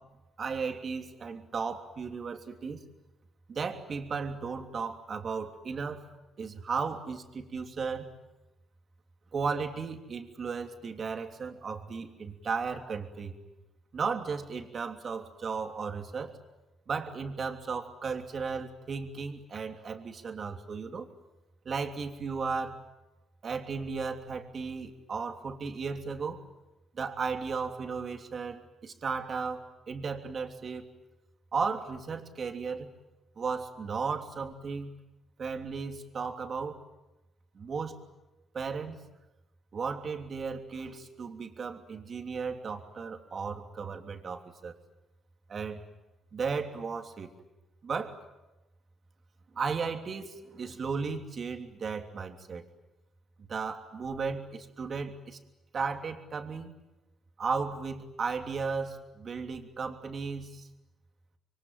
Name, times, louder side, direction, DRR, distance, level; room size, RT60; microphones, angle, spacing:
voice 1, 0.4-2.8 3.5-6.1 6.4-8.1 9.3-13.3 13.9-16.4 16.9-21.1 21.6-22.8 23.4-26.4 26.9-30.9 31.5-32.9 33.4-34.9 35.4-36.8 37.5-37.9 38.5-39.0 39.7-44.7 45.5-45.8 46.3-47.3 47.8-48.2 49.5-52.6 53.5-55.4 55.7-56.7 57.4-60.7, right 5 dB, 45° right, 5 dB, 3.2 m, -35 dB
27.0 x 23.5 x 9.4 m, 1.0 s
cardioid pair, 90°, 0 cm